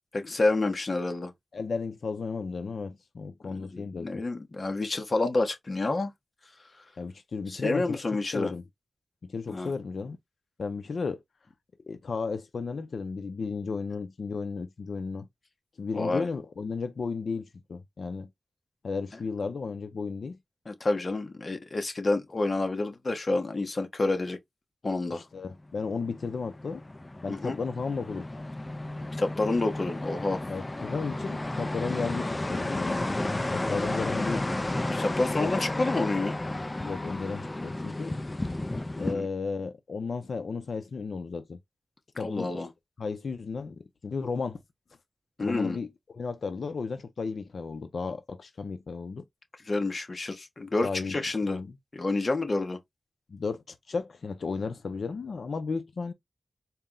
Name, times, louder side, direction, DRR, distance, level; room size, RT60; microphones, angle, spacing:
voice 1, 0.1-1.3 3.4-6.1 7.5-8.5 9.5-9.7 15.9-16.3 20.7-24.4 24.8-25.2 27.3-27.6 29.2-30.4 34.9-36.4 39.0-39.3 42.2-42.7 45.4-45.8 49.7-51.6 51.9-52.8, left 2 dB, 45° left, 0.9 m, -29 dB
voice 2, 1.5-4.1 7.0-8.0 8.3-8.6 9.2-10.2 10.6-11.2 11.9-15.3 15.8-18.3 18.8-20.4 25.1-26.8 27.2-28.4 30.5-34.4 35.4-35.5 36.8-38.2 39.0-41.6 42.2-42.6 43.0-44.6 45.4-49.2 50.8-51.2 51.4-51.8 53.3-56.1, left 4 dB, 85° left, 0.4 m, -34 dB
sound 1, 25.7-39.1, left 2 dB, 25° left, 0.3 m, -32 dB
4.2 x 2.0 x 3.7 m
wide cardioid pair, 110°, 0 cm